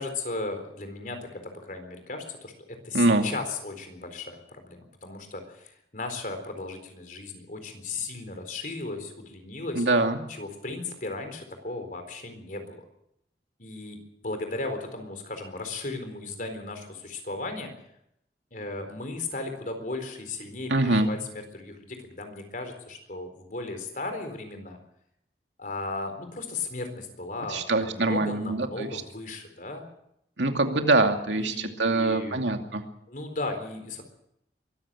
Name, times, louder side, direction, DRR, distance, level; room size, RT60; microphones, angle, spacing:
voice 1, 0.0-9.9 10.3-12.8 13.6-14.0 14.2-17.7 18.5-24.8 25.6-29.8 31.4-32.4 33.1-34.0, left 3 dB, 50° left, 6 dB, 4.2 m, -36 dB
voice 2, 2.9-3.2 9.8-10.2 20.7-21.1 27.5-28.9 30.4-32.8, right 2 dB, 90° right, 4 dB, 2.5 m, -24 dB
23.5 x 14.5 x 7.7 m, 0.78 s
head